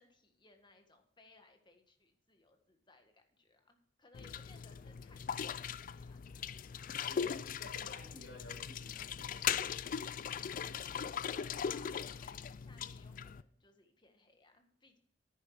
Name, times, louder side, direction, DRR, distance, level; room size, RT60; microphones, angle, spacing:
voice 1, 0.0-6.2 10.5-15.0, left 3 dB, 25° left, 6 dB, 1.6 m, -64 dB
sound 1, 4.1-13.4, left 7 dB, 45° left, 0.4 m, -39 dB
voice 2, 7.1-9.4, left 2 dB, 65° left, 0 dB, 5.3 m, -53 dB
10.5 x 9.2 x 4.8 m, 0.62 s
head